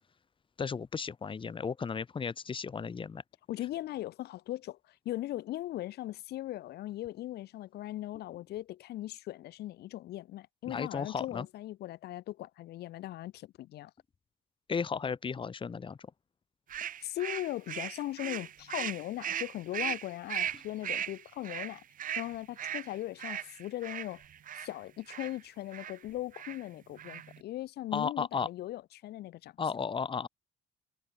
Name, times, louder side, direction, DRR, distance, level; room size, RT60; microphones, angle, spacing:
voice 1, 0.6-3.2 10.7-11.5 14.7-16.0 27.9-28.5 29.6-30.3, left 5 dB, 30° left, 2.8 m, -34 dB
voice 2, 3.5-13.9 17.0-21.8 22.2-24.2 24.5-29.6, left 15 dB, 75° left, 4.2 m, -39 dB
sound 1, 16.7-24.7 25.1-25.4 25.7-26.0 26.3-26.6 26.9-27.4, right 10 dB, 55° right, 4.4 m, -38 dB
cardioid pair, 110°, 17 cm